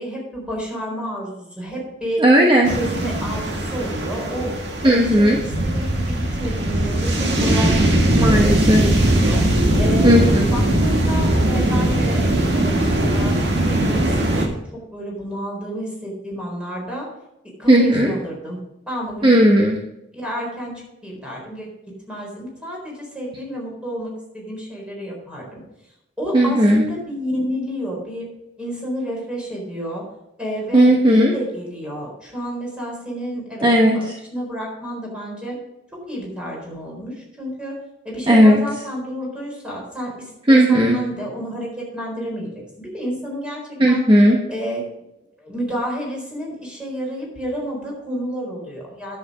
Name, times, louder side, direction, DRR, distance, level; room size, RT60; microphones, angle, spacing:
voice 1, 0.0-2.2 2.7-4.5 4.8-9.4 9.8-12.2 12.5-13.4 13.6-14.5 14.9-17.1 17.6-18.6 18.9-19.4 20.1-21.7 22.1-25.6 26.2-28.3 28.6-30.0 30.4-35.6 35.9-37.8 38.0-43.6 43.9-44.0 44.5-44.8 45.4-49.2, equal, 5° right, -3 dB, 4.2 m, -30 dB
voice 2, 2.2-2.7 4.8-5.4 8.1-8.9 10.0-10.5 17.7-18.1 19.2-19.8 26.3-26.8 30.7-31.3 33.6-34.0 38.3-38.6 40.5-41.0 43.8-44.4, equal, 30° right, 0 dB, 1.0 m, -14 dB
sound 1, 2.6-14.5, right 1 dB, 65° right, 1.8 m, -19 dB
10.5 x 7.5 x 5.0 m, 0.86 s
head